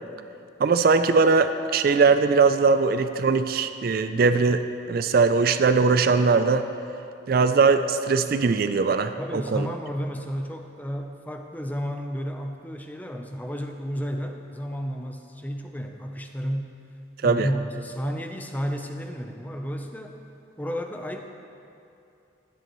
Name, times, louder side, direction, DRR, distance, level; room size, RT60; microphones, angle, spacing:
voice 1, 0.6-6.6 7.3-9.7 17.2-17.5, right 4 dB, 50° right, 10 dB, 0.4 m, -20 dB
voice 2, 9.2-16.7 17.2-20.2 20.6-21.2, equal, 10° left, 4 dB, 0.6 m, -32 dB
16.0 x 10.5 x 3.1 m, 2.7 s
head